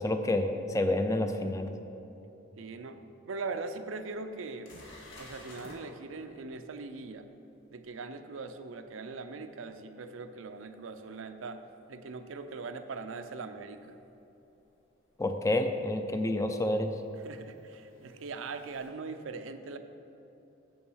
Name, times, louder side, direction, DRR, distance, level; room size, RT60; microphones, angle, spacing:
voice 1, 0.0-1.7 15.2-17.0, left 1 dB, 15° left, 7 dB, 0.4 m, -29 dB
voice 2, 2.6-4.7 5.2-7.3 7.7-11.6 11.9-14.0 17.2-19.8, right 4 dB, 80° right, 9 dB, 0.5 m, -41 dB
sound 1, 3.5-3.6 4.1-4.2 4.6-5.8 10.9-11.0 13.8-13.9 15.6-15.7 17.0-18.9, left 2 dB, 85° left, 1.8 m, -52 dB
7.1 x 6.3 x 6.2 m, 3.0 s
head